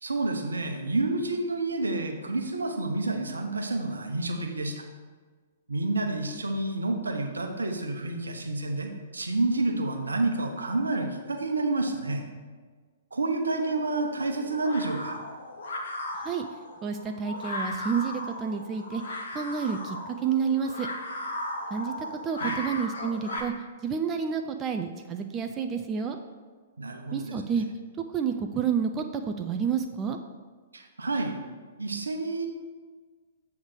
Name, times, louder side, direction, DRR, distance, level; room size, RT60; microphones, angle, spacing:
voice 1, 0.0-4.8 5.7-12.3 13.1-15.2 22.4-22.6 26.8-27.6 30.7-31.3 31.8-32.5, right 2 dB, 80° right, 3 dB, 1.0 m, -29 dB
sound 1, 13.5-23.4, left 1 dB, 60° left, 1.1 m, -37 dB
voice 2, 16.8-19.0 19.3-20.9 21.7-21.9 22.2-23.5 23.8-26.2 27.1-27.7 28.1-30.2, right 6 dB, 25° right, 5 dB, 0.4 m, -29 dB
7.9 x 3.6 x 6.2 m, 1.5 s
figure-of-eight pair, 115°, 0 cm